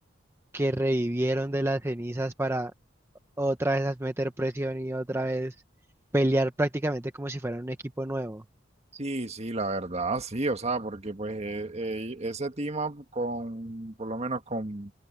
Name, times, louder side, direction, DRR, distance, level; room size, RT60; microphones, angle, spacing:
voice 1, 0.5-2.7 3.4-5.5 6.1-8.4, right 1 dB, 15° right, 0.8 m, -28 dB
voice 2, 8.9-14.9, right 2 dB, 35° right, 1.7 m, -32 dB
open air
head